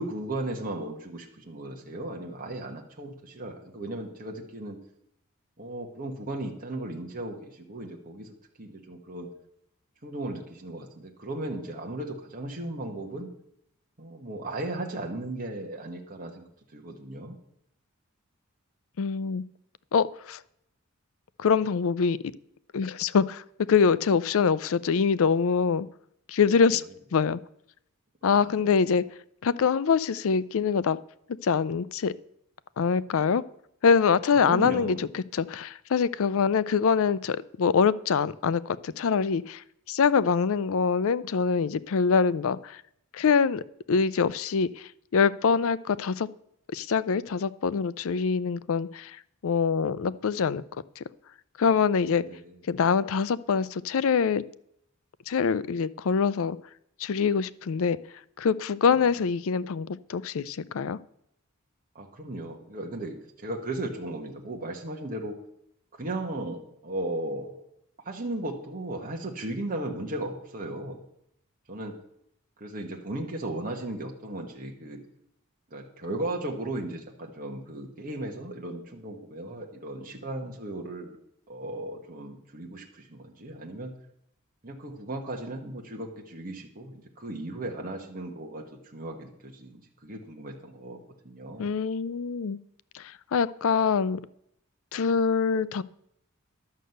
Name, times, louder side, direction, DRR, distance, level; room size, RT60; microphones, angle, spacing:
voice 1, 0.0-4.8 5.6-9.3 10.0-13.3 14.0-17.4 26.7-26.8 28.3-28.6 34.3-35.0 52.2-52.5 58.9-59.0 61.9-65.4 66.0-67.6 68.0-71.0 71.7-72.0 72.6-75.0 75.7-81.2 81.5-83.9 84.6-91.7, right 1 dB, 40° right, 1 dB, 1.5 m, -36 dB
voice 2, 19.0-19.4 19.9-20.4 21.4-22.3 22.7-23.4 23.7-25.9 26.3-26.8 27.1-27.4 28.2-29.0 29.4-31.0 31.4-32.1 32.8-33.4 33.8-42.8 43.1-43.6 43.9-46.3 46.7-49.2 49.4-50.6 51.0-51.1 51.6-52.2 52.7-54.4 55.3-56.6 57.0-58.0 58.4-61.0 91.6-92.6 92.9-94.2 94.9-95.8, left 6 dB, 65° left, 18 dB, 0.4 m, -24 dB
11.0 x 6.5 x 7.9 m, 0.75 s
head